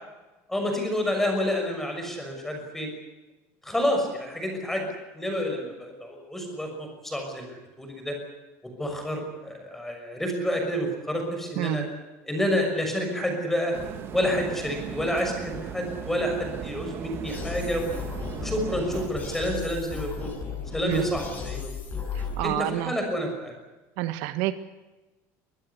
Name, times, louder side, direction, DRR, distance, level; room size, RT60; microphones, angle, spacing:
voice 1, 0.5-2.9 3.6-4.9 5.1-8.2 8.8-11.8 12.3-13.7 14.1-17.9 18.3-20.3 20.7-22.0 22.4-23.6, equal, 5° left, 3 dB, 6.2 m, -29 dB
voice 2, 11.6-11.9 20.8-21.1 22.1-22.9 24.0-24.5, right 15 dB, 75° right, 10 dB, 1.7 m, -28 dB
sound 1, 13.7-19.1, right 7 dB, 35° right, 2.5 m, -38 dB
sound 2, 17.3-22.5, left 5 dB, 25° left, 6.2 m, -35 dB
24.0 x 19.0 x 8.2 m, 1.1 s
cardioid pair, 170°, 7 cm